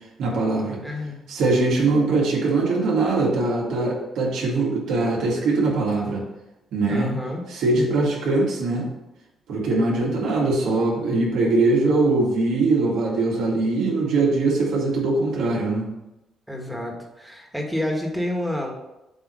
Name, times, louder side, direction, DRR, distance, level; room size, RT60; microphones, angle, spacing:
voice 1, 0.2-0.8 1.3-6.3 6.7-7.1 7.5-8.9 9.5-15.9, right 3 dB, 80° right, -3 dB, 2.2 m, -22 dB
voice 2, 0.8-1.2 6.9-7.4 16.5-18.7, left 1 dB, 5° right, 1 dB, 1.7 m, -29 dB
7.8 x 3.2 x 6.3 m, 0.94 s
cardioid pair, 90°, 0 cm